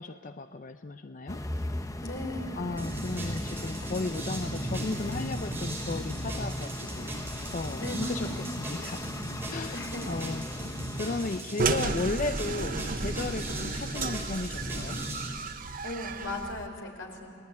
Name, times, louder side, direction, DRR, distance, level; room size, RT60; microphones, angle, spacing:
voice 1, 0.0-1.7 2.5-7.1 7.5-9.1 9.5-15.0, left 3 dB, 40° left, 9 dB, 0.5 m, -35 dB
sound 1, 1.3-11.4, left 1 dB, 15° left, 0.9 m, -38 dB
voice 2, 2.0-2.7 7.8-8.5 9.7-10.3 15.8-17.4, left 1 dB, 80° left, 2 dB, 4.9 m, -37 dB
sound 2, 2.8-15.3, right 1 dB, 10° right, 5.2 m, -37 dB
sound 3, 11.6-16.7, right 3 dB, 45° right, 0.9 m, -33 dB
29.5 x 19.0 x 9.3 m, 2.6 s
head